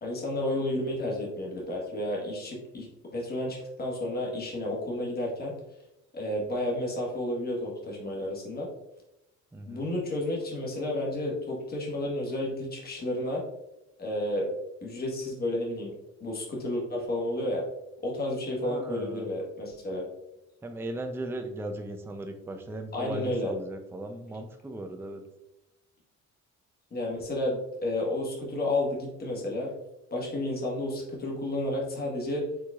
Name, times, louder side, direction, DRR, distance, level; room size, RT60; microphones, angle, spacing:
voice 1, 0.0-5.5 6.1-8.7 9.7-13.4 14.0-14.5 14.8-15.9 16.2-17.6 18.0-20.1 22.9-23.5 26.9-29.7 30.1-32.5, left 1 dB, 30° left, -3 dB, 1.4 m, -31 dB
voice 2, 9.5-9.8 18.5-19.3 20.6-25.2, right 1 dB, 10° right, 5 dB, 0.4 m, -37 dB
4.7 x 3.8 x 2.4 m, 0.90 s
cardioid pair, 90°, 30 cm